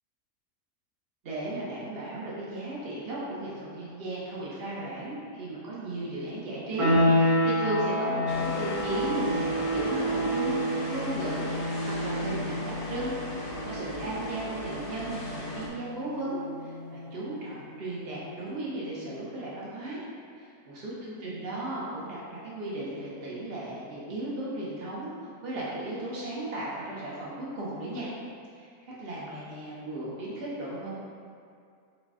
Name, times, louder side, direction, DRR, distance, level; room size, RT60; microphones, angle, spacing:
voice 1, 1.2-10.6 10.9-11.5 11.8-20.0 20.8-28.1 28.5-28.7 29.0-30.9, right 1 dB, 45° right, -7 dB, 0.9 m, -35 dB
sound 1, 6.8-17.3, equal, 80° right, 1.4 m, -29 dB
sound 2, 8.3-15.7, left 1 dB, 70° left, 0.5 m, -38 dB
4.0 x 2.3 x 3.6 m, 2.3 s
omnidirectional pair, 1.6 m